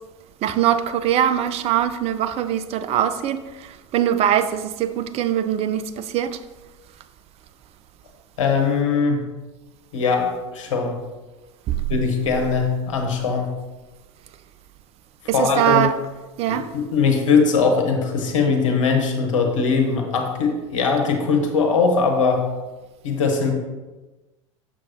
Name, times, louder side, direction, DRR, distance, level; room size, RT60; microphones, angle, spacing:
voice 1, 0.4-6.4 11.7-11.8 15.3-16.0 16.4-16.7, right 10 dB, 40° right, 0.5 m, -22 dB
voice 2, 8.4-9.3 9.9-11.0 11.9-13.6 15.3-15.9 16.5-22.5 23.0-23.5, left 5 dB, 70° left, 1.3 m, -20 dB
6.9 x 6.4 x 3.0 m
figure-of-eight pair, 80°, 17 cm